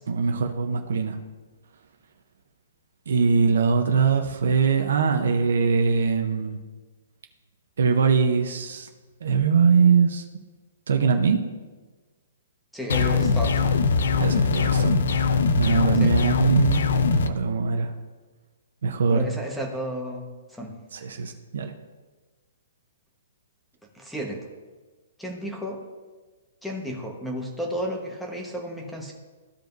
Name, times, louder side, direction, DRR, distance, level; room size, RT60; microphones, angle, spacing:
voice 1, 0.1-1.2 3.1-6.6 7.8-8.9 9.2-10.2 10.9-11.4 14.2-15.1 15.6-16.8 17.1-17.9 18.8-19.2 20.9-21.7, right 5 dB, 80° right, 4 dB, 0.8 m, -22 dB
voice 2, 12.7-13.7 16.0-16.1 19.1-20.7 23.9-24.4 25.2-25.8 26.6-29.1, equal, ahead, 0 dB, 1.3 m, -32 dB
sound 1, 12.9-17.3, left 5 dB, 75° left, 0.6 m, -21 dB
14.5 x 5.1 x 2.7 m, 1.3 s
hypercardioid pair, 155°, 0 cm